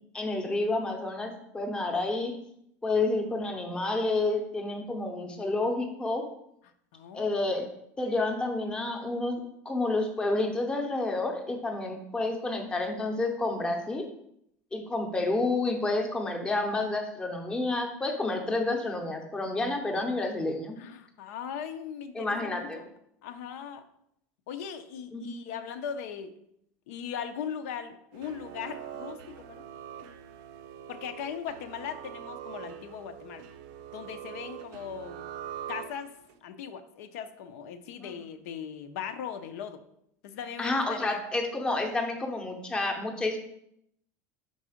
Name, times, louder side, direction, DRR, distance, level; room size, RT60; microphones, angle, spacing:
voice 1, 0.1-2.3 2.8-6.2 7.1-7.7 8.0-14.1 14.7-20.8 22.1-22.8 25.1-25.3 38.0-38.1 40.6-43.4, left 2 dB, 10° left, 3 dB, 0.7 m, -29 dB
voice 2, 6.9-7.3 20.8-22.8 23.2-23.8 24.5-26.3 26.9-29.6 30.9-33.4 33.9-35.3 35.7-36.1 36.4-39.8 40.2-41.2, left 8 dB, 80° left, 9 dB, 0.6 m, -39 dB
sound 1, 28.1-36.3, right 10 dB, 60° right, 0.5 m, -43 dB
5.4 x 4.0 x 4.9 m, 0.75 s
supercardioid pair, 160°, 8 cm